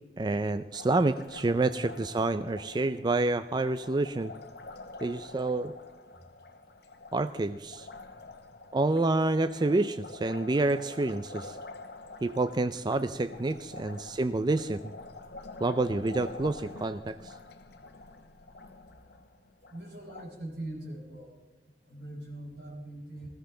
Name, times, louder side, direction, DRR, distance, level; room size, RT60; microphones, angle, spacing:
voice 1, 0.2-4.3 5.0-5.7 7.1-7.9 8.7-11.6 12.2-14.8 15.6-17.4, right 2 dB, 25° right, 11 dB, 0.4 m, -28 dB
Liquid, 0.7-20.3, left 3 dB, 65° left, 1.2 m, -47 dB
voice 2, 19.7-21.4 21.9-23.3, right 1 dB, 70° right, 0 dB, 5.0 m, -42 dB
20.0 x 15.5 x 3.8 m, 1.2 s
head